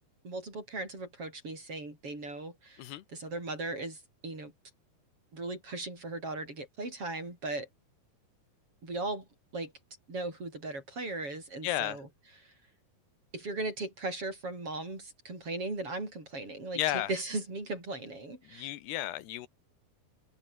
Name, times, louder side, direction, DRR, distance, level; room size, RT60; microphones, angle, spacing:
voice 1, 0.2-4.5 5.3-7.7 8.8-9.3 9.5-9.7 10.1-12.1 12.4-12.5 13.3-18.7, right 2 dB, 35° right, 8.7 m, -38 dB
voice 2, 11.6-12.0 16.8-17.1 18.5-19.5, left 14 dB, 90° left, 3.4 m, -33 dB
open air
omnidirectional pair, 4.6 m